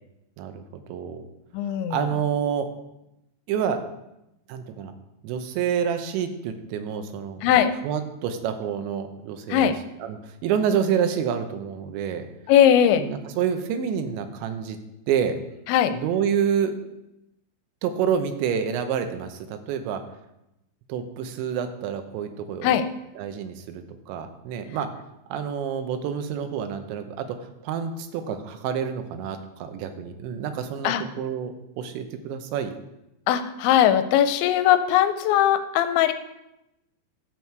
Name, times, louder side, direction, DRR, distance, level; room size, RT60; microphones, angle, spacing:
voice 1, 0.9-1.2 1.9-2.7 3.5-3.8 4.5-4.9 5.2-7.4 7.8-9.7 10.0-12.3 13.0-14.8 15.1-15.4 15.9-16.7 17.8-20.0 20.9-22.7 23.2-24.9 25.3-27.3 27.6-32.7, right 8 dB, 80° right, 7 dB, 3.2 m, -28 dB
voice 2, 1.5-2.0 7.4-7.7 9.5-9.8 12.5-13.0 15.7-15.9 22.6-22.8 30.8-31.0 33.3-36.1, left 10 dB, 85° left, 11 dB, 2.9 m, -19 dB
12.5 x 7.3 x 4.6 m, 0.88 s
omnidirectional pair, 5.2 m